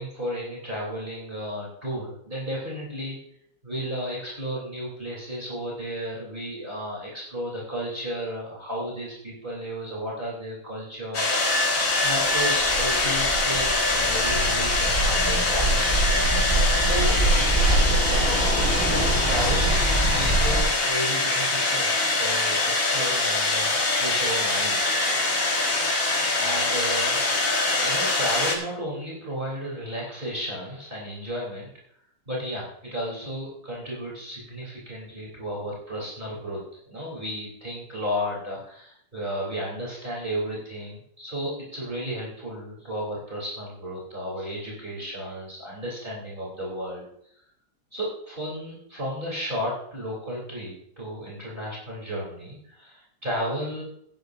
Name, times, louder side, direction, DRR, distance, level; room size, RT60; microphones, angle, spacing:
voice 1, 0.0-3.2 3.6-11.7 12.0-16.0 16.7-18.8 19.2-24.8 26.4-27.2 27.8-31.7 32.3-36.6 36.9-47.1 47.9-53.8, equal, 25° right, -5 dB, 3.5 m, -33 dB
sound 1, 11.1-28.6, left 2 dB, 40° left, 2.2 m, -24 dB
sound 2, 12.3-20.6, right 1 dB, 5° left, 5.1 m, -24 dB
15.0 x 12.0 x 2.6 m, 0.71 s
omnidirectional pair, 2.2 m